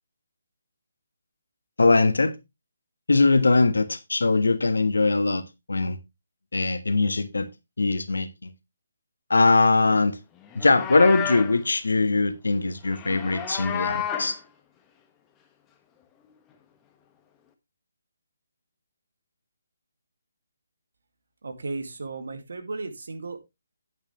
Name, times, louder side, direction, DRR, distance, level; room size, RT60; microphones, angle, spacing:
voice 1, 1.8-2.3 3.1-5.4 5.7-6.0 6.5-7.5 7.8-8.5 9.3-10.2 10.5-14.4, left 3 dB, 75° left, 1.4 m, -21 dB
Livestock farm animals working animals, 10.4-11.6 12.9-14.4, left 8 dB, 15° left, 1.2 m, -31 dB
voice 2, 21.4-23.4, right 3 dB, 65° right, 2.1 m, -35 dB
9.5 x 8.6 x 3.1 m
figure-of-eight pair, 145°, 0 cm